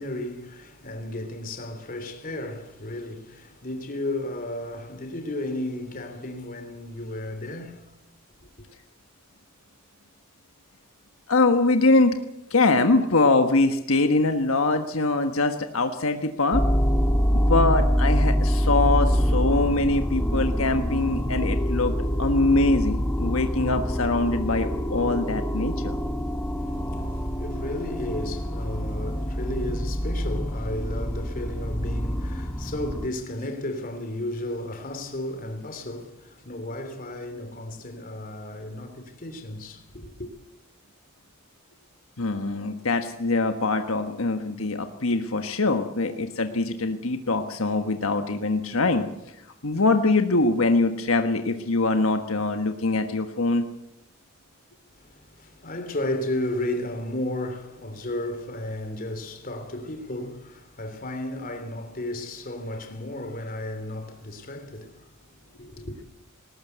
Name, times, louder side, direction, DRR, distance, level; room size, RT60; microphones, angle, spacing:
voice 1, 0.0-7.9 26.6-40.3 54.9-66.0, left 1 dB, 45° left, 3.2 m, -34 dB
voice 2, 11.3-12.2 12.5-16.6 17.3-21.9 22.2-26.0 42.2-49.1 49.6-53.7, left 2 dB, 80° left, 1.4 m, -23 dB
sound 1, 16.5-33.1, equal, 10° left, 1.7 m, -25 dB
20.0 x 19.0 x 8.1 m
head